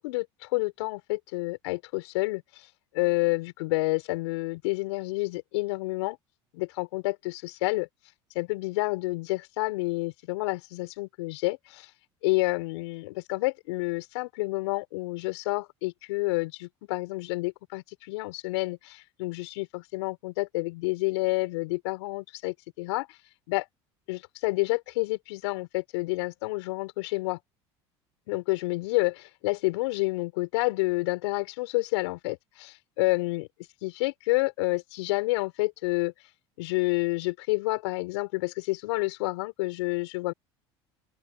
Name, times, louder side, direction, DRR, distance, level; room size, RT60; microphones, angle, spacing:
voice 1, 0.0-2.4 2.9-6.2 6.5-7.9 8.3-11.9 12.2-23.1 23.5-23.6 24.1-27.4 28.3-32.7 33.0-33.5 33.8-36.1 36.6-40.3, left 23 dB, 75° left, 5.1 m, -29 dB
open air
hypercardioid pair, 75°, 15 cm